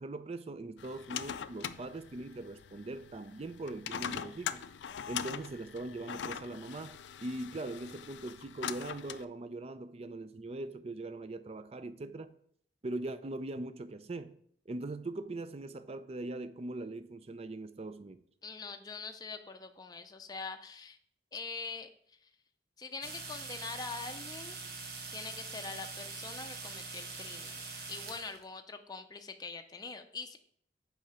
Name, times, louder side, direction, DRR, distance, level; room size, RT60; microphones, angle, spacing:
voice 1, 0.0-4.6 5.1-12.3 12.8-14.4 14.7-18.2, right 2 dB, 35° right, 0.4 m, -41 dB
sound 1, 0.8-9.2, left 8 dB, 75° left, 0.4 m, -42 dB
voice 2, 18.4-21.0 21.3-22.3 22.8-24.6 25.1-30.4, left 4 dB, 20° left, 0.5 m, -44 dB
sound 2, 23.0-28.4, right 4 dB, 60° right, 1.2 m, -43 dB
6.3 x 4.8 x 5.6 m
head